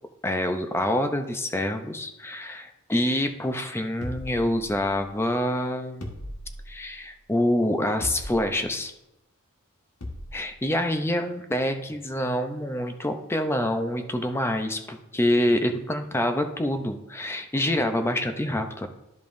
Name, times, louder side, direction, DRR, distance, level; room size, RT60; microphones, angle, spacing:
voice 1, 0.2-6.2 6.7-8.9 10.3-18.9, left 1 dB, 10° left, 6 dB, 0.5 m, -26 dB
sound 1, 4.0-5.1 6.0-6.9 8.0-8.7 10.0-10.5, left 1 dB, 90° left, 1.4 m, -38 dB
12.5 x 5.2 x 2.6 m, 0.91 s
head